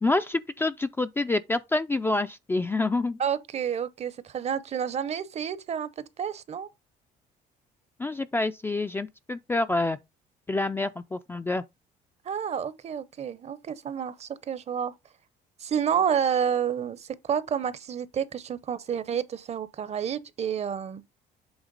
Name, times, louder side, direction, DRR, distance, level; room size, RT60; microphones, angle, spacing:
voice 1, 0.0-3.2 8.0-10.0 10.5-11.6, left 2 dB, 15° left, 0.3 m, -27 dB
voice 2, 3.2-6.7 12.3-14.9 15.6-21.0, right 8 dB, 40° right, 0.6 m, -29 dB
8.0 x 3.5 x 3.8 m
cardioid pair, 110°, 17 cm